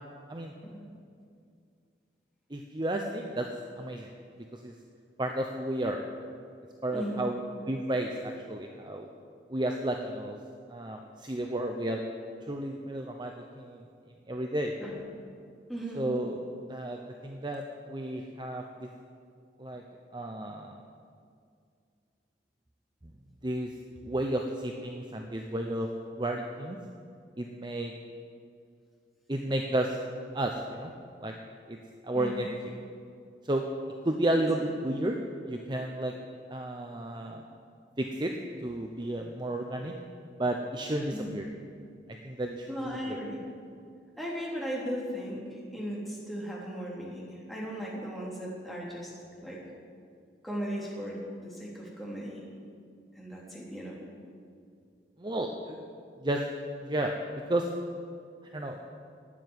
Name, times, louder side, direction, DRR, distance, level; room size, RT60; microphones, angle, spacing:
voice 1, 2.5-3.5 3.8-4.1 4.5-4.7 5.2-6.0 6.8-7.4 7.7-9.1 9.5-10.4 10.7-12.0 12.5-13.8 14.3-14.7 15.9-18.9 19.6-19.8 20.1-20.8 23.0-23.1 23.4-23.7 24.0-25.9 26.2-26.8 27.4-27.9 29.3-30.0 30.3-30.9 31.2-31.3 31.7-31.8 32.0-32.6 33.4-33.6 34.0-35.2 35.5-36.1 36.5-37.4 38.0-38.3 38.6-39.9 40.4-41.5 42.2-42.8 43.1-43.2 55.2-55.8 56.2-56.5 56.8-57.1 57.5-57.7 58.5-58.8, right 1 dB, 25° right, 2 dB, 0.8 m, -32 dB
voice 2, 6.9-7.3 14.8-14.9 15.7-16.1 32.1-32.4 34.3-34.7 41.1-41.4 42.7-43.4 44.2-49.1 49.4-49.6 50.4-52.4 53.1-53.9, equal, ahead, -5 dB, 3.2 m, -37 dB
12.5 x 9.0 x 9.6 m, 2.3 s
head